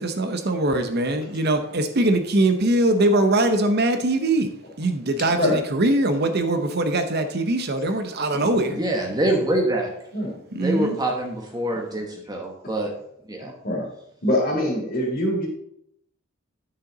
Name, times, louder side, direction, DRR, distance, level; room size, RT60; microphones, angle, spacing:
voice 1, 0.0-4.5 4.8-8.8 10.5-11.0, right 2 dB, 50° right, 7 dB, 0.8 m, -22 dB
voice 2, 5.3-5.6 8.3-8.8 10.1-10.3 13.4-13.9 14.2-15.5, left 1 dB, 45° left, -2 dB, 3.1 m, -24 dB
voice 3, 8.7-9.9 10.5-12.9 13.3-13.5, right 1 dB, 20° right, 1 dB, 1.1 m, -25 dB
8.9 x 6.8 x 3.9 m, 0.74 s
head